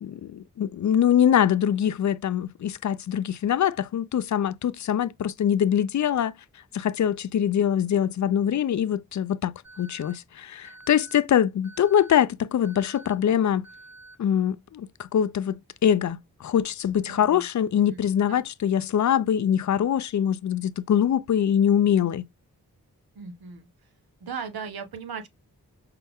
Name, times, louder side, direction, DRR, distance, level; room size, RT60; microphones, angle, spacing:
voice 1, 0.0-6.3 6.7-13.7 14.2-22.3, left 9 dB, 55° left, 0.4 m, -23 dB
Alarm, 9.6-10.1 10.6-11.1 11.6-12.1 12.6-13.1 13.6-14.1, right 2 dB, 50° right, 2.4 m, -48 dB
voice 2, 17.1-17.4 17.8-18.0 18.3-18.4 23.1-23.7 24.2-25.3, right 6 dB, 80° right, 1.0 m, -37 dB
5.6 x 2.1 x 3.5 m
cardioid pair, 40°, 37 cm